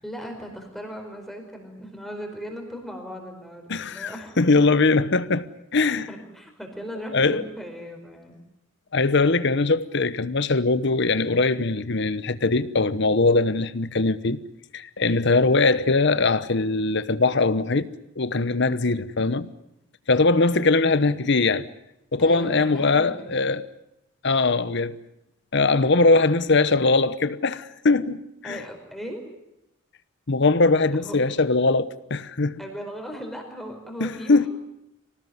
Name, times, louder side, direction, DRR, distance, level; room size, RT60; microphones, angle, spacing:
voice 1, 0.0-4.4 6.1-8.4 22.2-23.4 28.4-29.2 30.9-31.2 32.6-34.5, equal, ahead, 4.8 m, -38 dB
voice 2, 3.7-6.1 7.1-7.4 8.9-14.4 14.7-17.9 18.2-19.5 20.1-21.6 22.1-23.6 24.2-25.0 25.5-28.6 30.3-32.6 34.0-34.5, left 3 dB, 60° left, 1.0 m, -21 dB
25.0 x 18.5 x 9.6 m
head